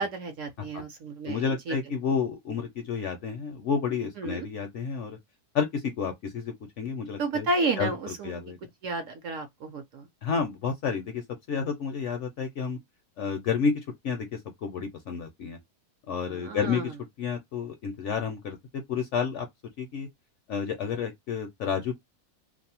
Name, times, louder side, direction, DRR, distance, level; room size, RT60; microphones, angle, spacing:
voice 1, 0.0-1.8 4.2-4.5 7.2-8.4 8.8-10.1 16.3-16.9, right 3 dB, 65° right, 0.8 m, -31 dB
voice 2, 1.3-5.2 5.5-7.5 7.8-8.6 10.2-11.2 11.5-12.8 13.2-15.6 16.1-16.9 17.2-19.5 19.8-20.1 20.5-22.0, left 6 dB, 65° left, 0.7 m, -30 dB
2.6 x 2.0 x 2.7 m
omnidirectional pair, 1.6 m